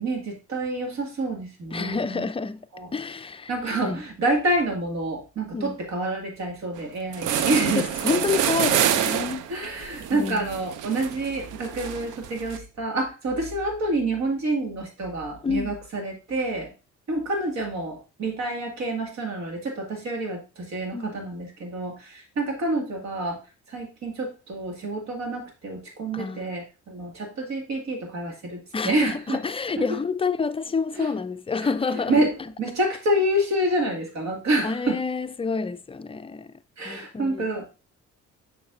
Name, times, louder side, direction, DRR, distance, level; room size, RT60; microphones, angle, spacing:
voice 1, 0.0-2.2 2.7-2.9 3.5-7.9 9.5-16.7 17.1-23.4 23.7-29.4 29.8-30.0 31.0-31.1 31.6-35.0 36.8-37.6, right 1 dB, 65° right, 2.1 m, -28 dB
voice 2, 1.7-4.0 5.5-5.8 7.3-9.5 10.1-10.5 15.4-15.8 20.9-21.2 26.1-26.5 28.7-32.2 34.6-36.5 36.8-37.5, left 4 dB, 20° left, 0.4 m, -29 dB
sound 1, 6.8-6.9 7.1-12.6, right 10 dB, 90° right, 0.6 m, -27 dB
7.0 x 5.9 x 2.6 m
cardioid pair, 90°, 30 cm